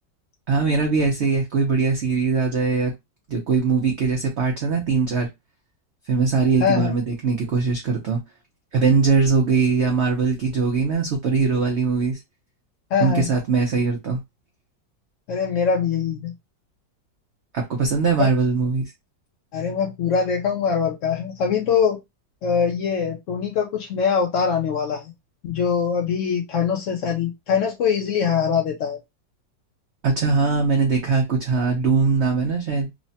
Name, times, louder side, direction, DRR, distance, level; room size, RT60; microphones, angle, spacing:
voice 1, 0.5-2.9 3.3-5.3 6.1-8.2 8.7-12.2 13.0-14.2 17.5-18.9 30.0-32.9, right 4 dB, 80° right, 0.6 m, -21 dB
voice 2, 6.6-6.9 12.9-13.3 15.3-16.3 18.2-18.3 19.5-22.0 22.4-25.1 25.4-29.0, left 6 dB, 85° left, 0.6 m, -23 dB
3.1 x 2.1 x 2.6 m
omnidirectional pair, 1.9 m